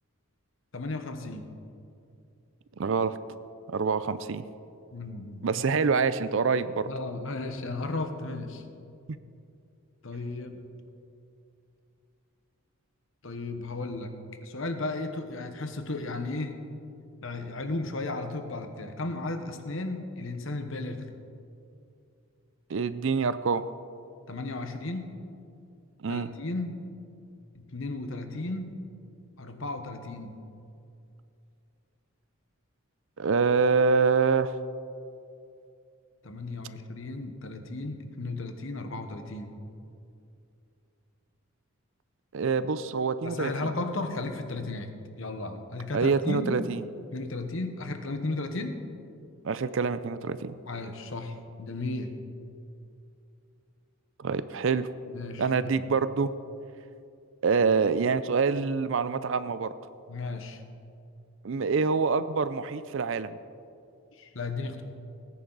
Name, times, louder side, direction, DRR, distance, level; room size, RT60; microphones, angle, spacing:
voice 1, 0.7-1.5 4.9-5.8 6.9-8.6 10.0-10.6 13.2-14.1 14.4-16.6 17.2-21.1 24.3-25.2 26.1-26.8 27.5-28.8 29.4-30.4 36.2-39.6 43.2-44.9 45.2-46.6 47.1-48.8 50.7-52.1 55.1-55.8 60.1-60.6 64.2-64.8, left 2 dB, 60° left, 7 dB, 1.1 m, -35 dB
voice 2, 2.8-3.2 3.7-4.4 5.4-6.9 22.7-23.7 26.0-26.3 33.2-34.5 42.3-43.7 45.9-46.8 49.4-50.5 54.2-54.9 55.4-56.3 57.4-59.7 61.4-63.3, right 5 dB, 60° right, 14 dB, 0.4 m, -26 dB
18.5 x 10.0 x 4.0 m, 2.5 s
head